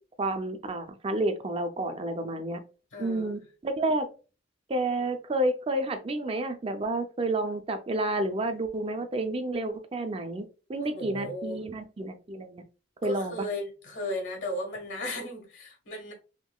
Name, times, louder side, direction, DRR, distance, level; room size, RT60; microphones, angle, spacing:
voice 1, 0.2-2.6 3.0-4.1 4.7-10.4 10.7-12.6 13.0-13.4, right 2 dB, 30° right, 0.5 m, -30 dB
voice 2, 2.9-3.4 10.8-11.6 13.0-16.1, left 1 dB, 75° left, 1.4 m, -35 dB
3.6 x 2.9 x 2.3 m
head